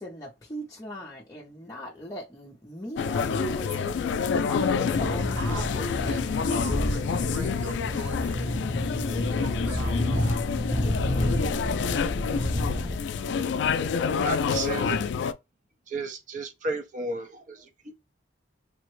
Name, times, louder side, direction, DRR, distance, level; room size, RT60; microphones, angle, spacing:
voice 1, 0.0-4.0 4.5-6.3, left 1 dB, 20° left, 0.6 m, -37 dB
sound 1, 3.0-15.3, left 6 dB, 70° left, 0.3 m, -28 dB
sound 2, 4.9-13.0, equal, 10° right, 0.9 m, -30 dB
voice 2, 5.4-8.8 9.2-10.4, right 2 dB, 85° right, 1.0 m, -41 dB
voice 3, 14.2-15.1 15.9-17.9, right 3 dB, 45° right, 0.6 m, -33 dB
3.3 x 2.1 x 3.1 m
head